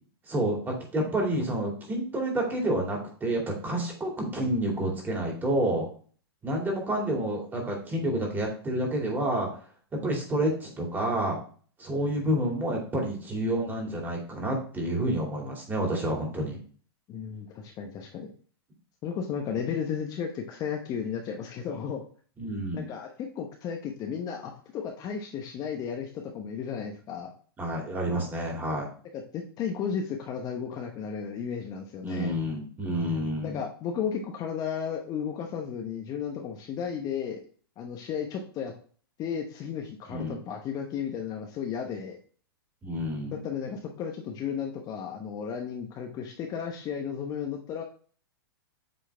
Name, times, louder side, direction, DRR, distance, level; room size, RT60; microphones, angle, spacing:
voice 1, 0.3-5.9 6.4-9.5 10.0-11.4 11.8-16.6 22.4-22.9 27.6-28.9 32.0-33.6 40.1-40.4 42.8-43.4, right 1 dB, 15° right, 0 dB, 2.5 m, -29 dB
voice 2, 17.1-18.3 19.0-22.0 22.7-27.3 29.1-32.4 33.4-37.4 37.8-38.7 39.2-42.2 43.3-47.8, left 7 dB, 30° left, 3 dB, 0.9 m, -34 dB
7.7 x 3.8 x 3.4 m, 0.43 s
hypercardioid pair, 125°, 13 cm